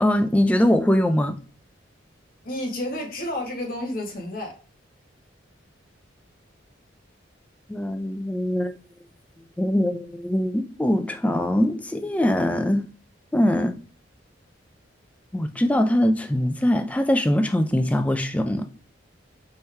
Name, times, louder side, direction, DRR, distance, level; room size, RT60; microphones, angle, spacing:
voice 1, 0.0-1.3 7.7-8.7 9.6-12.9 13.3-13.8 15.3-18.7, left 1 dB, 5° left, 0.3 m, -22 dB
voice 2, 2.4-4.6, left 1 dB, 45° left, 1.3 m, -30 dB
4.5 x 3.2 x 3.3 m
head